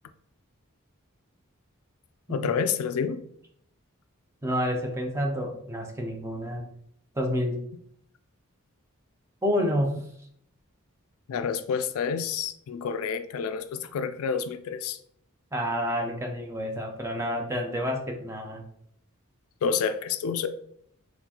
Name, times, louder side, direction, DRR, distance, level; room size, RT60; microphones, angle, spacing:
voice 1, 2.3-3.2 11.3-15.0 19.6-20.5, left 6 dB, 80° left, 11 dB, 0.3 m, -29 dB
voice 2, 4.4-6.6 7.1-7.6 9.4-10.0 15.5-18.6, equal, 10° right, 2 dB, 0.5 m, -29 dB
4.2 x 2.3 x 2.8 m, 0.69 s
head